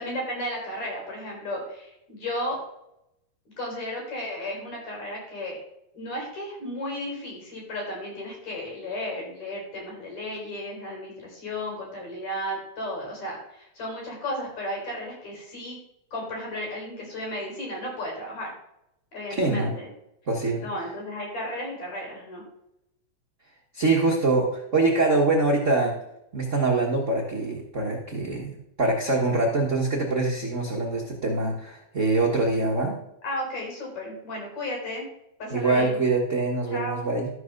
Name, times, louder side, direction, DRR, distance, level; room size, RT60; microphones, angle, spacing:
voice 1, 0.0-2.6 3.6-5.6 5.9-15.8 16.1-18.5 19.1-19.9 20.6-22.4 33.2-35.1 35.4-36.0 36.7-37.2, left 1 dB, 60° left, -1 dB, 5.6 m, -34 dB
voice 2, 19.3-19.7 20.3-20.7 23.7-25.9 26.3-33.0 35.5-37.3, right 3 dB, 70° right, -1 dB, 0.7 m, -24 dB
12.5 x 4.9 x 6.5 m, 0.82 s
omnidirectional pair, 3.6 m